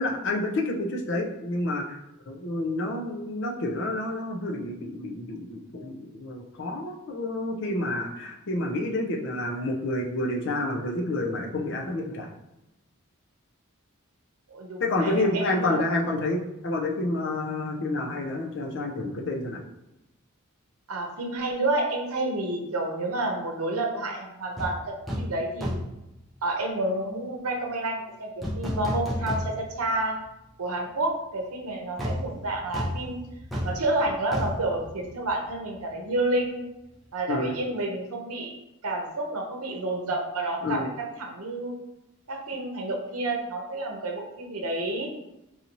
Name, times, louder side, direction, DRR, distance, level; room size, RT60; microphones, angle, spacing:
voice 1, 0.0-1.8 2.3-12.3 14.8-19.6 37.3-37.5 40.6-40.9, left 2 dB, 55° left, 1 dB, 0.5 m, -29 dB
voice 2, 14.5-15.8 20.9-25.8 26.4-30.2 30.6-33.2 33.6-36.7 37.1-38.5 38.8-41.7 42.3-45.1, right 2 dB, 80° right, 1 dB, 0.8 m, -29 dB
sound 1, 24.6-24.7 25.1-25.3 25.6-26.0 28.4-29.8 30.2-30.3 32.0-35.6 35.9-36.1, equal, ahead, 0.5 m, -32 dB
4.0 x 2.7 x 2.9 m, 0.90 s
head